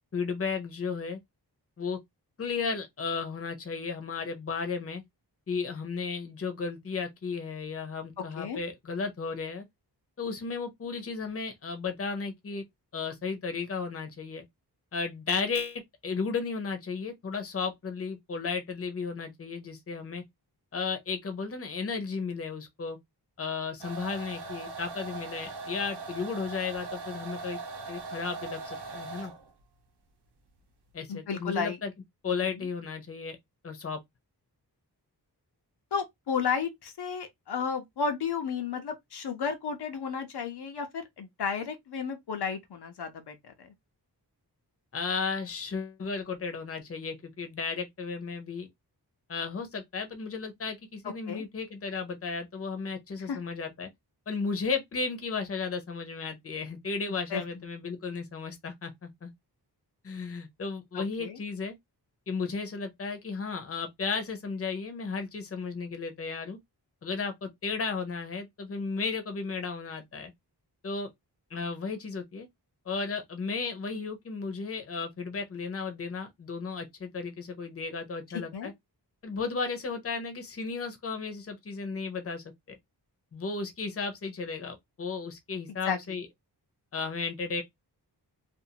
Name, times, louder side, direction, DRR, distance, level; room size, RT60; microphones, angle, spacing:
voice 1, 0.1-1.2 1.8-2.0 2.4-5.0 5.5-9.6 10.2-12.6 12.9-14.4 14.9-20.2 20.7-23.0 23.4-27.6 27.9-29.3 30.9-31.9 32.2-33.4 33.6-34.0 44.9-48.7 49.3-53.9 54.3-59.3 60.0-61.7 62.3-66.6 67.0-70.3 70.8-71.1 71.5-72.5 72.9-78.7 79.2-82.4 83.3-86.3 86.9-87.6, left 4 dB, 35° left, 0.7 m, -34 dB
sound 1, 23.8-29.5, right 4 dB, 85° right, 0.9 m, -40 dB
voice 2, 31.1-31.8 35.9-43.7 51.3-51.4 53.3-53.4 57.3-57.4 57.8-57.9 60.9-61.4 78.3-78.7 85.9-86.2, left 6 dB, 80° left, 0.7 m, -33 dB
2.5 x 2.5 x 2.7 m
wide cardioid pair, 115°, 39 cm